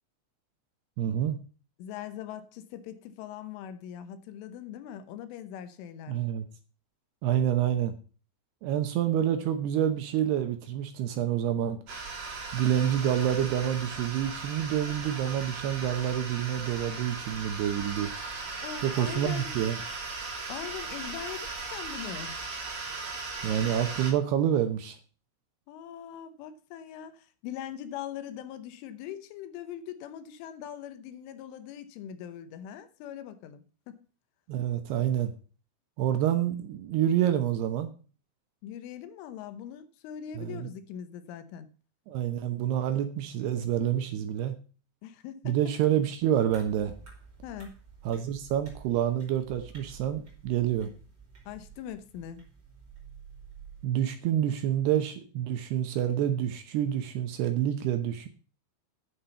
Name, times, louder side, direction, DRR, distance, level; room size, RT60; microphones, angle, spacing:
voice 1, 1.0-1.4 6.1-6.5 7.2-8.0 8.6-11.8 12.5-18.1 18.8-19.8 23.4-25.0 34.5-35.3 36.0-37.9 40.4-40.7 42.1-44.5 45.5-46.9 48.1-50.9 53.8-58.3, right 10 dB, 75° right, 2.7 m, -28 dB
voice 2, 1.8-6.2 18.6-19.5 20.5-22.4 25.7-34.0 38.6-41.7 45.0-45.6 47.4-47.7 51.5-52.4, left 10 dB, 85° left, 3.5 m, -41 dB
sound 1, 11.9-24.1, right 4 dB, 40° right, 4.0 m, -38 dB
sound 2, 46.5-53.9, right 6 dB, 25° right, 4.0 m, -51 dB
9.5 x 7.2 x 6.9 m
omnidirectional pair, 5.5 m